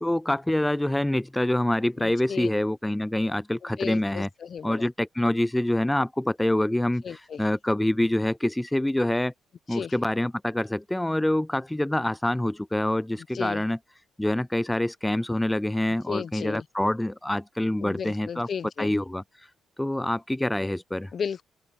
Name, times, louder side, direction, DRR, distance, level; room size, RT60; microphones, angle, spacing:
voice 1, 0.0-4.3 4.6-9.3 9.7-13.8 14.2-18.5 18.8-19.2 19.8-21.1, left 1 dB, 10° left, 0.3 m, -26 dB
voice 2, 2.0-2.5 3.6-4.9 7.0-7.4 9.7-9.9 13.3-13.6 16.1-16.6 17.8-18.9 21.1-21.4, left 7 dB, 50° left, 0.8 m, -34 dB
open air
cardioid pair, 90°, 0 cm